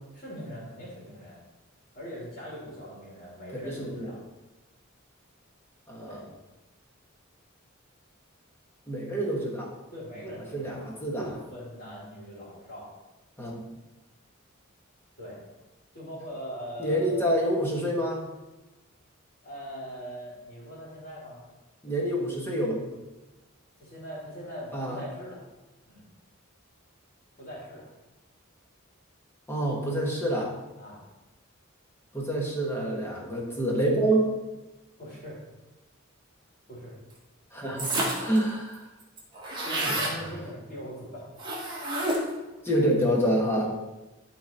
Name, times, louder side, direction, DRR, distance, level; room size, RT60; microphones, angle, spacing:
voice 1, 0.1-1.4 1.9-4.2 6.0-6.2 9.9-12.9 15.2-15.4 15.9-17.3 19.4-21.5 23.7-25.5 25.8-26.1 27.4-27.9 30.8-31.0 35.0-35.4 36.7-36.9 39.6-41.3 41.6-41.7 43.5-43.6, equal, 40° left, -6 dB, 2.7 m, -41 dB
voice 2, 3.5-4.1 5.9-6.2 8.9-9.7 10.5-11.3 13.4-13.6 16.8-18.2 21.8-22.8 24.7-25.0 29.5-30.4 32.1-34.3 37.5-38.8 39.8-39.9 42.6-43.6, right 1 dB, 10° left, -3 dB, 1.5 m, -27 dB
sound 1, 37.8-38.4 38.7-38.8 39.0-40.2 41.4-42.4, right 1 dB, 20° right, 1.7 m, -29 dB
11.5 x 4.0 x 4.3 m, 1.1 s
head